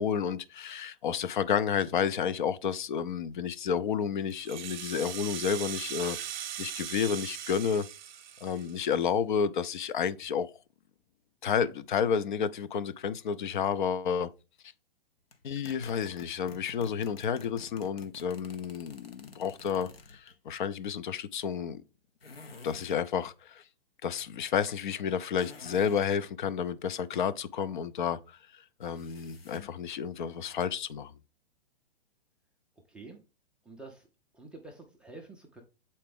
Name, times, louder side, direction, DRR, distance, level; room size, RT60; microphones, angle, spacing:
voice 1, 0.0-6.2 6.6-7.9 8.4-10.5 11.4-14.3 15.4-21.8 22.6-23.6 24.0-31.1, left 7 dB, 55° left, 0.6 m, -31 dB
Rattle (instrument), 4.3-9.1, right 10 dB, 50° right, 0.7 m, -39 dB
sound 1, 15.3-20.4 22.2-23.0 25.4-26.1 28.8-29.8, left 4 dB, 80° left, 1.0 m, -50 dB
voice 2, 32.9-33.2 33.7-34.1 34.3-35.6, right 3 dB, 5° right, 0.3 m, -48 dB
7.4 x 4.2 x 3.5 m
figure-of-eight pair, 110°, 30 cm